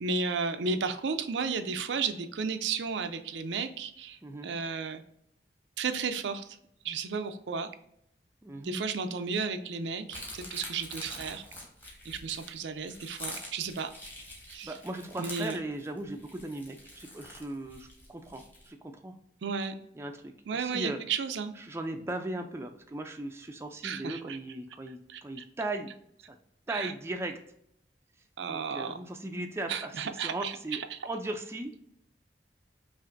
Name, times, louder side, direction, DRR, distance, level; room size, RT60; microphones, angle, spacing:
voice 1, 0.0-5.0 5.8-6.6 6.8-7.7 8.6-11.4 12.0-13.9 14.5-14.8 15.2-15.6 19.4-19.9 20.5-21.5 23.8-24.4 25.1-25.2 26.7-26.9 28.4-29.0 29.7-31.0, right 5 dB, 85° right, 8 dB, 0.5 m, -33 dB
voice 2, 8.4-8.9 14.6-19.2 19.9-21.0 21.6-25.9 26.3-26.4 26.7-27.4 28.5-31.7, right 2 dB, 15° right, 4 dB, 0.4 m, -38 dB
sound 1, 10.1-18.7, left 1 dB, 10° left, 1.0 m, -45 dB
5.6 x 2.5 x 2.5 m, 0.72 s
head